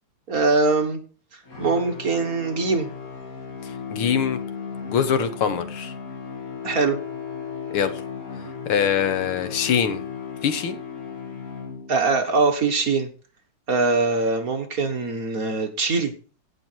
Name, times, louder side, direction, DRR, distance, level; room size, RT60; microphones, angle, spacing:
voice 1, 0.3-1.0 1.6-2.9 6.6-7.0 11.9-13.1 13.7-16.1, right 3 dB, 45° right, 5 dB, 1.5 m, -22 dB
sound 1, 1.5-12.2, left 6 dB, 40° left, 2.3 m, -35 dB
voice 2, 3.6-4.4 4.9-5.9 7.7-8.0 8.7-10.0 10.4-10.8, left 7 dB, 75° left, 11 dB, 1.9 m, -23 dB
16.5 x 6.0 x 4.5 m, 0.38 s
omnidirectional pair, 2.4 m